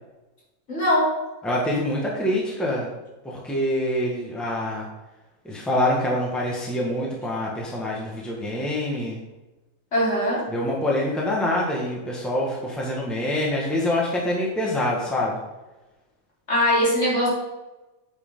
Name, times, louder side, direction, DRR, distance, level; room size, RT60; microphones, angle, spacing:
voice 1, 0.7-1.1 9.9-10.5 16.5-17.4, equal, 60° left, -7 dB, 3.7 m, -21 dB
voice 2, 1.4-2.9 3.2-4.9 5.4-9.2 10.5-15.4, left 1 dB, ahead, -3 dB, 1.5 m, -25 dB
8.4 x 6.7 x 3.8 m, 1.0 s
omnidirectional pair, 1.4 m